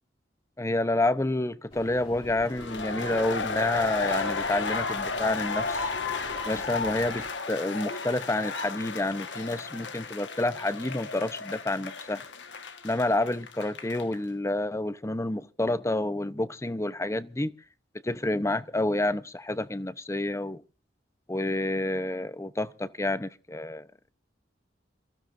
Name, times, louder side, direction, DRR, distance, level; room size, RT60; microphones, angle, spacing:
voice 1, 0.6-5.9 6.5-12.2 12.8-17.5 18.0-20.6 21.3-23.9, left 2 dB, 15° left, 0.7 m, -29 dB
sound 1, 1.7-7.3, left 1 dB, 35° left, 2.7 m, -46 dB
sound 2, 2.5-14.2, left 4 dB, 85° left, 1.4 m, -33 dB
28.0 x 15.5 x 2.6 m
head